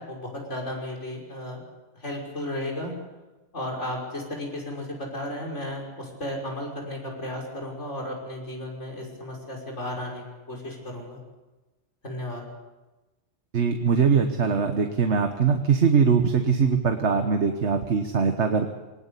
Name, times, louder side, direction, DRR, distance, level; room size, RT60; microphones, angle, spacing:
voice 1, 0.0-1.6 1.9-2.9 3.5-11.2 12.0-12.4, left 1 dB, 80° left, -1 dB, 6.2 m, -34 dB
voice 2, 13.5-18.7, right 5 dB, 70° right, 6 dB, 1.6 m, -22 dB
22.5 x 19.0 x 8.4 m, 1.1 s
omnidirectional pair, 1.2 m